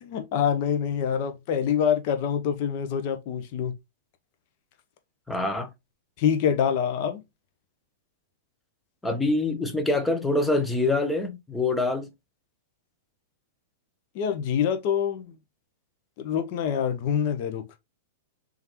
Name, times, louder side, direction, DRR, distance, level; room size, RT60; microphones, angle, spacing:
voice 1, 0.0-3.7 6.2-7.2 14.1-15.3 16.2-17.6, left 8 dB, 50° left, 0.8 m, -26 dB
voice 2, 5.3-5.7 9.0-12.1, left 2 dB, 5° left, 0.7 m, -25 dB
3.5 x 3.5 x 3.1 m
hypercardioid pair, 135°, 0 cm